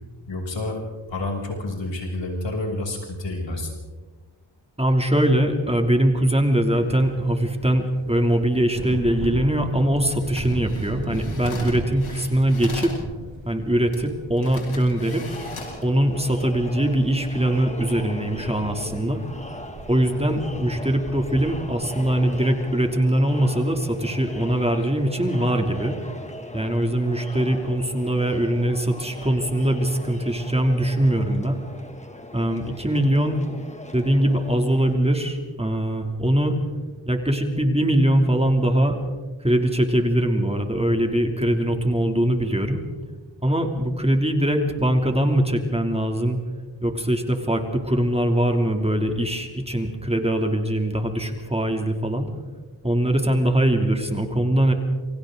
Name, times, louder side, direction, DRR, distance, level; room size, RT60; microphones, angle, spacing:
voice 1, 0.3-0.8 1.1-3.7, left 2 dB, 65° left, 0 dB, 7.4 m, -29 dB
voice 2, 4.8-12.9 13.5-15.2 15.8-19.2 19.9-26.0 26.5-31.6 32.3-33.4 33.9-36.5 37.0-39.0 39.4-42.8 43.4-46.4 46.8-52.3 52.8-54.7, right 1 dB, 10° right, 4 dB, 2.9 m, -22 dB
sound 1, 6.7-22.7, right 3 dB, 65° right, 2.4 m, -38 dB
sound 2, 10.2-13.0 13.9-14.0 14.4-15.8 16.4-16.6, left 3 dB, 90° left, 6.0 m, -39 dB
Crowd, 15.0-34.9, left 1 dB, 15° left, 2.3 m, -40 dB
28.5 x 25.0 x 3.9 m, 1.3 s
cardioid pair, 70°, 47 cm